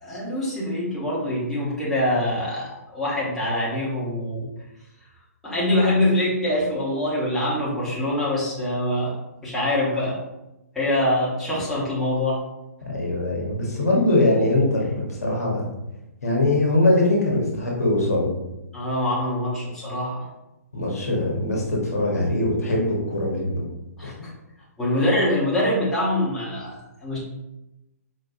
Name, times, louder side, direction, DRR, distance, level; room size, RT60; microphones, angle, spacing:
voice 1, 0.0-4.5 5.4-9.1 9.4-10.2 10.7-12.4 18.7-20.2 24.0-24.3 24.8-27.2, left 1 dB, 5° left, -10 dB, 1.1 m, -24 dB
voice 2, 12.9-15.7 16.2-18.3 20.7-23.6 24.0-24.1, left 2 dB, 70° left, -3 dB, 1.2 m, -22 dB
4.6 x 2.5 x 2.6 m, 0.93 s
figure-of-eight pair, 125°, 9 cm